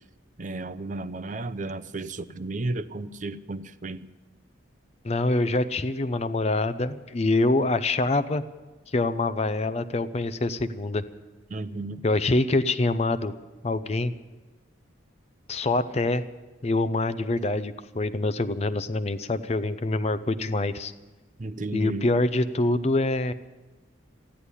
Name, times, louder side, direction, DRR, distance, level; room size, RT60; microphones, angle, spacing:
voice 1, 0.4-4.1 11.5-12.0 21.4-22.1, right 2 dB, 40° right, 14 dB, 0.6 m, -33 dB
voice 2, 5.0-8.4 8.9-11.0 12.0-13.3 13.6-14.1 15.5-16.2 16.6-20.9 21.7-23.3, left 2 dB, 35° left, 13 dB, 0.5 m, -25 dB
14.0 x 10.0 x 9.7 m, 1.2 s
head